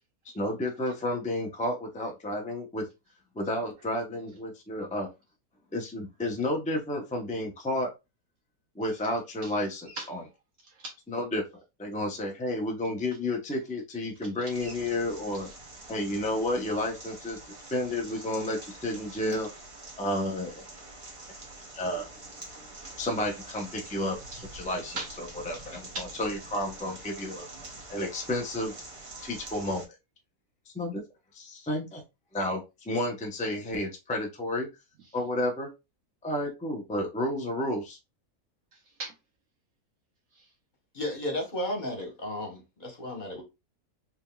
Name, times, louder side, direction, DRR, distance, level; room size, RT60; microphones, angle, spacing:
voice 1, 0.3-2.8 3.3-5.1 5.7-7.9 8.8-10.2 11.1-11.4 11.8-15.5 15.9-19.5 20.0-20.7 21.7-22.1 23.0-24.2 24.5-25.0 25.5-25.9 26.2-27.5 27.9-28.7 29.2-29.8 30.7-31.0 31.3-32.0 32.3-34.7 35.1-35.7 36.2-38.0, left 1 dB, 10° left, 0.4 m, -31 dB
voice 2, 9.9-10.3 10.6-10.9 14.3-14.7 15.3-15.5 15.8-15.9 18.0-18.3 19.1-19.2 22.8-22.9 24.3-24.5 24.9-25.1 25.5-26.1 27.3-27.8 28.1-28.3 29.1-29.6 35.0-35.2 38.7-39.1 40.3-40.5, right 2 dB, 65° right, 1.2 m, -43 dB
sound 1, 14.5-29.9, right 2 dB, 25° right, 0.9 m, -46 dB
voice 3, 40.9-43.4, left 1 dB, 30° left, 1.2 m, -33 dB
4.1 x 3.3 x 2.3 m
omnidirectional pair, 1.7 m